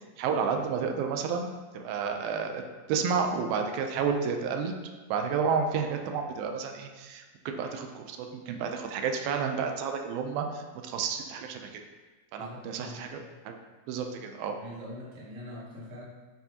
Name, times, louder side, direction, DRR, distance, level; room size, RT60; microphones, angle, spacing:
voice 1, 0.0-1.5 1.7-2.6 2.9-4.8 5.1-11.8 12.3-13.6 13.9-14.6, right 6 dB, 90° right, 4 dB, 2.5 m, -31 dB
voice 2, 12.4-13.3 14.5-16.0, left 1 dB, 35° right, -7 dB, 2.1 m, -43 dB
9.2 x 6.9 x 2.9 m, 1.3 s
omnidirectional pair, 4.1 m